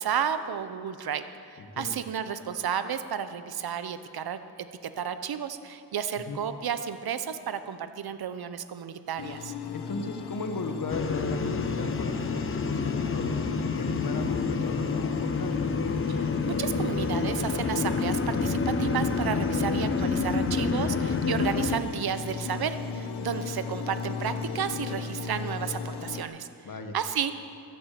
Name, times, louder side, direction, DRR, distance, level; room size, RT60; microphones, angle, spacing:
voice 1, 0.0-4.4 4.8-9.5 16.1-26.5 26.9-27.3, right 8 dB, 70° right, 11 dB, 0.9 m, -32 dB
voice 2, 1.6-1.9 6.3-6.4 9.7-13.4 13.7-15.5 19.5-19.7 21.7-21.8 26.6-26.9, left 3 dB, 60° left, 6 dB, 1.5 m, -35 dB
sound 1, 9.2-26.2, left 5 dB, 90° left, 0.9 m, -37 dB
sound 2, 10.9-21.8, left 4 dB, 35° left, 0.8 m, -28 dB
13.5 x 11.0 x 7.6 m, 2.5 s
wide cardioid pair, 100°, 38 cm